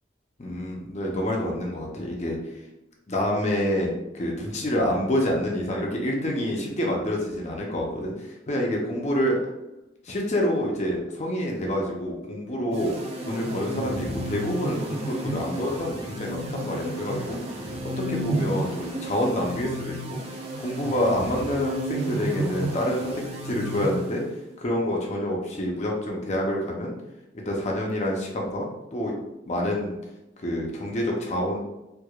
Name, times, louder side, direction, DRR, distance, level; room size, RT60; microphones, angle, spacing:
voice 1, 0.4-2.4 3.1-9.4 10.0-12.9 13.3-17.4 18.0-20.2 20.6-23.1 23.4-24.2 24.6-26.9 27.3-29.1 29.5-29.9 30.4-31.6, left 1 dB, 40° left, -1 dB, 0.7 m, -27 dB
sound 1, 12.7-24.5, right 1 dB, 35° right, 0.7 m, -32 dB
4.6 x 2.4 x 2.4 m, 0.93 s
head